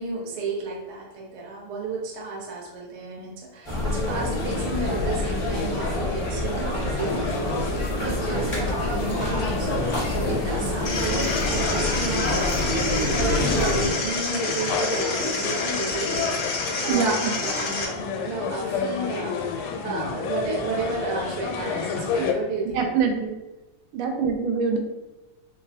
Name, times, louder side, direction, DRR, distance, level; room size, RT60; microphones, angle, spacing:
voice 1, 0.0-18.0 18.2-22.8, right 3 dB, 65° right, -3 dB, 0.6 m, -33 dB
sound 1, 3.6-13.9, left 1 dB, 30° left, 0.5 m, -27 dB
sound 2, 3.7-22.3, left 5 dB, 90° left, 1.5 m, -31 dB
sound 3, 10.9-17.9, left 3 dB, 65° left, 0.9 m, -29 dB
voice 2, 16.9-17.3 22.2-22.3 22.7-23.3 23.9-24.8, right 5 dB, 85° right, 3 dB, 1.5 m, -24 dB
5.2 x 2.1 x 2.7 m, 1.1 s
omnidirectional pair, 2.4 m